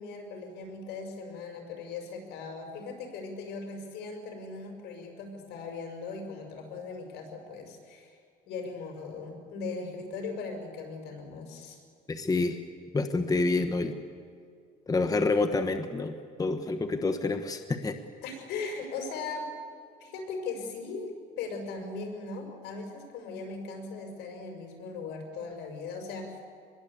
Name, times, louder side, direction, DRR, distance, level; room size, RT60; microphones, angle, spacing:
voice 1, 0.0-8.2 8.5-11.8 18.2-19.5 20.0-26.4, left 4 dB, 80° left, 3 dB, 6.1 m, -39 dB
voice 2, 12.1-12.6 12.9-13.9 14.9-18.0, left 3 dB, 20° left, 8 dB, 1.3 m, -28 dB
25.5 x 21.0 x 8.5 m, 2.3 s
cardioid pair, 110°, 17 cm